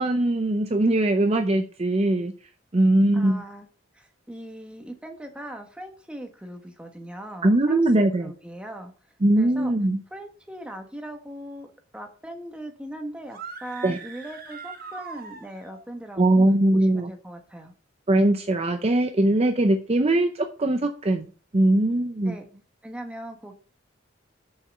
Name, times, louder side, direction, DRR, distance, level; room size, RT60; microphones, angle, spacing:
voice 1, 0.0-2.3 2.7-3.4 7.4-8.3 9.2-10.0 13.8-14.0 16.2-17.1 18.1-21.3 21.5-22.4, right 1 dB, 30° right, 7 dB, 0.6 m, -21 dB
voice 2, 3.1-3.7 3.9-8.9 9.4-9.7 10.1-16.4 16.7-17.7 22.2-22.5 22.8-23.5, right 1 dB, 5° right, 3 dB, 1.4 m, -39 dB
sound 1, 13.3-15.9, right 5 dB, 50° right, 1.2 m, -41 dB
6.9 x 5.6 x 6.8 m, 0.40 s
head